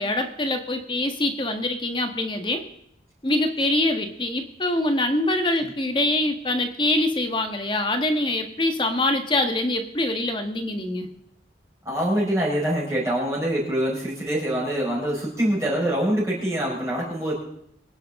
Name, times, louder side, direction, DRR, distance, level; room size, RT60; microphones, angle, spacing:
voice 1, 0.0-2.6 3.2-11.1, left 1 dB, 25° left, 6 dB, 1.5 m, -24 dB
voice 2, 11.8-17.3, right 1 dB, 15° right, -6 dB, 5.1 m, -24 dB
24.5 x 10.5 x 3.7 m, 0.71 s
head